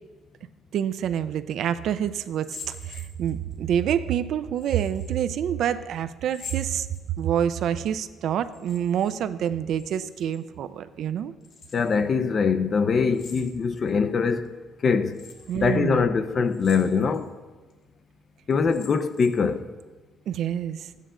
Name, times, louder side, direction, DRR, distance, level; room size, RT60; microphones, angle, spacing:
voice 1, 0.7-6.9 7.2-11.3 15.5-16.0 20.3-20.9, right 9 dB, 60° right, 0.5 m, -27 dB
sound 1, 2.3-3.6 4.6-5.2 6.2-7.4 8.4-9.2 9.4-10.4 11.4-12.0 13.1-13.9 14.4-14.5 15.1-15.6 16.5-17.2 17.7-17.8 18.5-19.5, left 5 dB, 55° left, 2.0 m, -45 dB
voice 2, 11.7-14.5 14.8-15.2 15.5-17.3 18.5-19.6, left 5 dB, 35° left, 0.6 m, -23 dB
13.0 x 9.1 x 3.7 m
cardioid pair, 145°, 0 cm